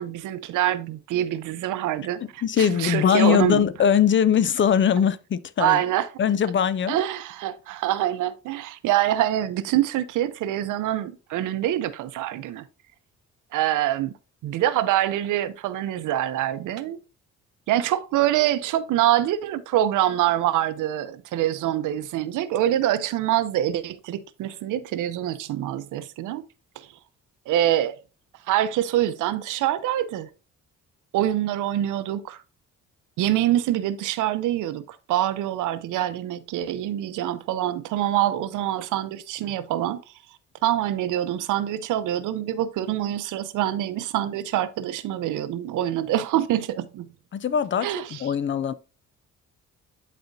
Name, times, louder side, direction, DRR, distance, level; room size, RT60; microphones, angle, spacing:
voice 1, 0.0-3.6 5.6-6.1 6.9-12.7 13.5-14.1 14.4-17.0 17.7-26.4 26.8-26.9 27.5-28.0 28.5-30.3 31.1-32.4 33.2-40.0 40.6-47.1 47.8-48.2, right 12 dB, 85° right, 0.7 m, -25 dB
voice 2, 2.4-5.8 6.2-7.0 47.3-47.9 48.2-48.7, left 8 dB, 40° left, 0.5 m, -21 dB
11.5 x 4.2 x 2.7 m
cardioid pair, 90°, 30 cm